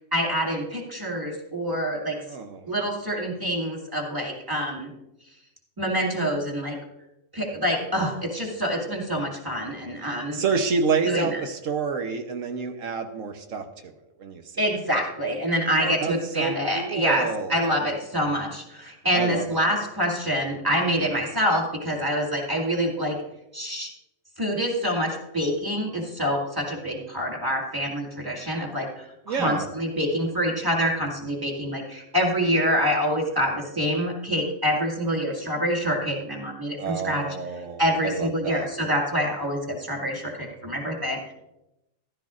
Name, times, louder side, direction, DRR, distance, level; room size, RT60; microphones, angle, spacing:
voice 1, 0.1-2.2 2.7-4.9 5.8-6.8 7.3-10.4 11.0-11.4 14.6-23.2 23.5-23.9 24.4-37.3 37.8-41.2, equal, 15° right, -1 dB, 2.2 m, -26 dB
voice 2, 2.2-2.7 10.3-13.9 14.2-14.6 15.8-17.6 19.1-19.6 29.3-29.7 36.8-38.7, right 5 dB, 80° right, 6 dB, 1.3 m, -28 dB
14.5 x 12.5 x 2.5 m, 0.91 s
omnidirectional pair, 1.3 m